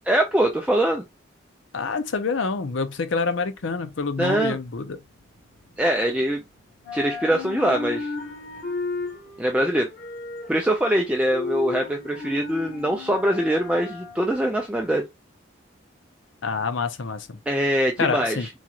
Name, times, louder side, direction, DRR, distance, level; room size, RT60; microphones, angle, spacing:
voice 1, 0.1-1.0 4.2-4.6 5.8-6.4 6.9-8.1 9.4-9.9 10.5-15.0 17.5-18.5, right 1 dB, 5° right, 0.4 m, -23 dB
voice 2, 1.7-5.0 16.4-17.4 18.0-18.5, left 4 dB, 75° left, 0.6 m, -27 dB
sound 1, 3.6-6.5 6.7-14.9, left 4 dB, 50° left, 1.3 m, -35 dB
3.9 x 3.0 x 2.4 m
head